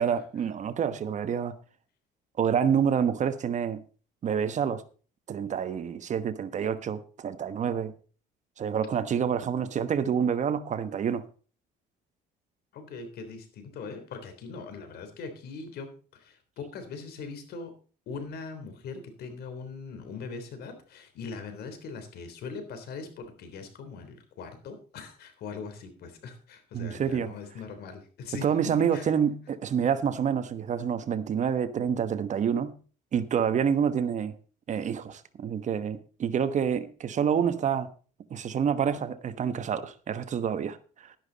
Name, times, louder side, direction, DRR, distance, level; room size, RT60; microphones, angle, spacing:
voice 1, 0.0-1.5 2.4-3.8 4.2-4.8 5.3-7.9 8.6-11.2 26.7-27.3 28.4-32.8 33.1-34.4 34.7-37.9 38.3-41.2, right 7 dB, 45° right, 1.2 m, -28 dB
voice 2, 12.7-17.7 18.1-29.1, left 4 dB, 70° left, 3.5 m, -41 dB
12.5 x 11.0 x 4.0 m
cardioid pair, 110°, 17 cm